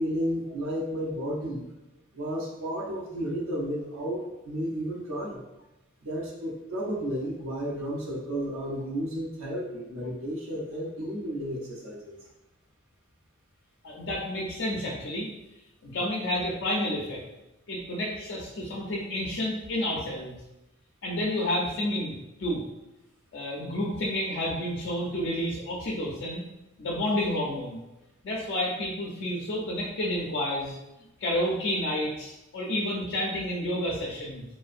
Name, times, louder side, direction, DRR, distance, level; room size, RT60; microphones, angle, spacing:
voice 1, 0.0-1.7 2.1-5.4 6.0-12.2, equal, 90° right, -4 dB, 0.6 m, -32 dB
voice 2, 13.8-15.3 15.8-17.2 17.7-20.3 21.0-22.1 22.4-22.6 23.3-26.4 26.8-27.8 28.2-30.7 31.2-34.4, left 1 dB, 55° left, -3 dB, 0.4 m, -30 dB
2.4 x 2.0 x 2.4 m, 0.94 s
head